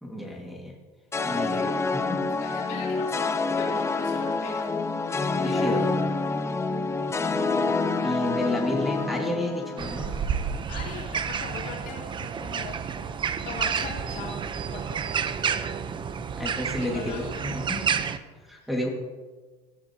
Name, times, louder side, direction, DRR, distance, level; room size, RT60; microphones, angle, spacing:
voice 1, 0.0-0.7 1.2-1.5 1.9-2.2 5.3-5.8 8.0-10.1 16.4-17.9 18.4-18.9, left 1 dB, ahead, -2 dB, 1.8 m, -31 dB
sound 1, 1.1-10.4, left 3 dB, 15° left, 0.7 m, -27 dB
voice 2, 1.2-1.9 2.4-4.7 5.4-5.9 10.7-13.2 13.4-14.4 14.7-14.8 16.8-18.0 18.6-18.7, left 4 dB, 65° left, -4 dB, 3.1 m, -40 dB
sound 2, 9.8-18.2, right 7 dB, 30° right, 0.7 m, -30 dB
17.0 x 13.0 x 2.8 m, 1.4 s
cardioid pair, 120°, 16 cm